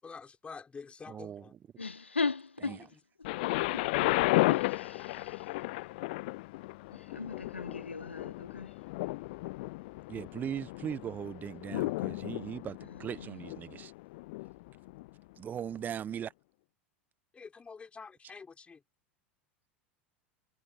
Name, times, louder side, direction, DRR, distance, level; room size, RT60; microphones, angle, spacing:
voice 1, 0.0-1.5 17.3-18.8, left 5 dB, 20° left, 6.6 m, -47 dB
voice 2, 1.1-1.6 2.7-2.8 10.1-13.9 15.4-16.3, right 9 dB, 30° right, 1.3 m, -39 dB
voice 3, 1.8-2.9 3.5-4.2 4.5-5.6 6.9-8.7 12.8-13.4, left 4 dB, 80° left, 1.3 m, -38 dB
Thunder, 3.2-15.1 15.9-16.0, left 22 dB, 55° left, 0.3 m, -34 dB
figure-of-eight pair, 80°, 6 cm